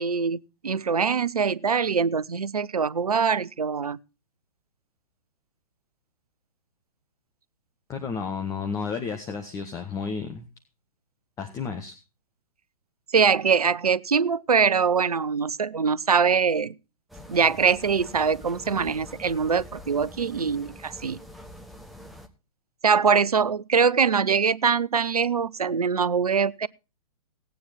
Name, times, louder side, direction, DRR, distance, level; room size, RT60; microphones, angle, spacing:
voice 1, 0.0-4.0 13.1-16.7 17.3-21.2 22.8-26.7, right 6 dB, 75° right, 0.6 m, -23 dB
voice 2, 7.9-10.4 11.4-11.9, left 5 dB, 15° left, 1.4 m, -32 dB
sound 1, 17.1-22.3, left 1 dB, ahead, 1.2 m, -45 dB
17.0 x 9.4 x 4.1 m
figure-of-eight pair, 115°, 19 cm